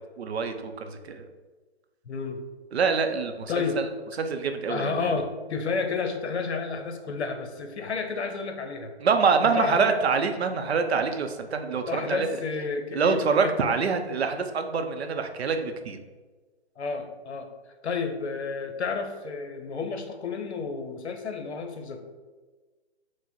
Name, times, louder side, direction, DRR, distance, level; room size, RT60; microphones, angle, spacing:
voice 1, 0.2-1.2 2.7-3.5 4.2-5.2 9.0-12.3 12.9-16.0, right 5 dB, 70° right, 7 dB, 0.6 m, -25 dB
voice 2, 2.1-2.4 3.5-3.8 4.7-8.9 9.4-10.0 11.7-13.5 13.9-14.0 16.8-17.5 17.8-22.0, left 5 dB, 75° left, 6 dB, 0.8 m, -31 dB
4.6 x 2.1 x 4.2 m, 1.3 s
hypercardioid pair, 155°, 33 cm